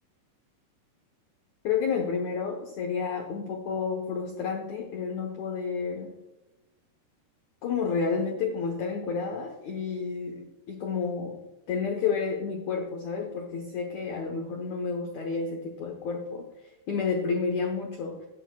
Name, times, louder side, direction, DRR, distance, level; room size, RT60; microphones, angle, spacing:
voice 1, 1.6-6.2 7.6-11.4 11.7-16.4 16.9-18.2, left 5 dB, 75° left, 2 dB, 1.7 m, -30 dB
17.5 x 9.0 x 2.3 m, 1.0 s
omnidirectional pair, 4.9 m